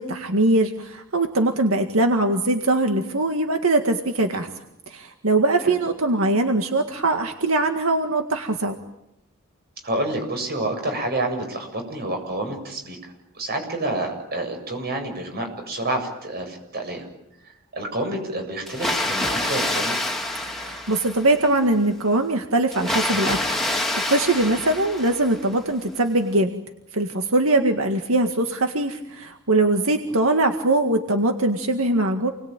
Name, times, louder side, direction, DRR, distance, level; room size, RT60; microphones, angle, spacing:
voice 1, 0.0-4.5 4.9-8.8 20.6-23.4 23.6-26.5 26.9-32.3, right 2 dB, 85° right, 5 dB, 2.0 m, -22 dB
voice 2, 9.8-17.1 17.4-20.0 24.5-24.7 30.0-30.1, right 1 dB, 50° right, 4 dB, 7.8 m, -29 dB
Water, 18.7-21.5 22.7-25.5, left 1 dB, ahead, 3.0 m, -27 dB
29.0 x 21.0 x 9.1 m, 0.84 s
head